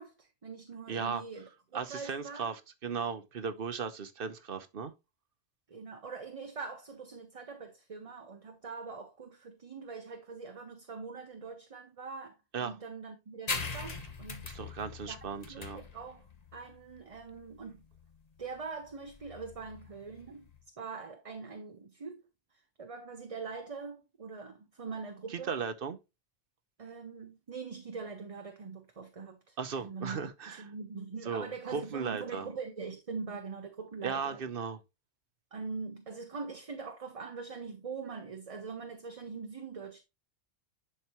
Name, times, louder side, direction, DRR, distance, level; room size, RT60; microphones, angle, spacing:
voice 1, 0.0-2.5 5.7-14.5 15.1-16.3 16.5-17.8 18.4-20.5 20.8-22.2 22.5-25.6 26.8-30.2 30.5-34.4 35.5-40.0, right 4 dB, 35° right, 0.8 m, -43 dB
voice 2, 0.9-1.2 1.7-4.9 12.5-12.7 14.4-15.8 25.3-26.0 29.6-30.7 31.3-32.5 34.0-34.8, right 6 dB, 55° right, 1.0 m, -36 dB
sound 1, 13.5-20.6, left 4 dB, 35° left, 1.2 m, -41 dB
10.5 x 4.6 x 3.0 m
omnidirectional pair, 1.2 m